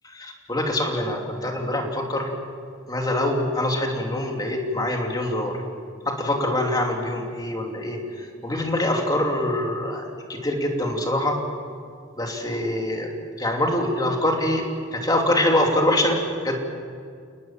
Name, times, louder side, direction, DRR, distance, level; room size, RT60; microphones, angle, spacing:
voice 1, 0.1-2.3 2.9-5.6 6.0-11.4 12.2-13.1 13.4-14.6 14.9-16.5, left 1 dB, 20° left, 1 dB, 3.0 m, -24 dB
29.0 x 20.0 x 7.5 m, 2.2 s
head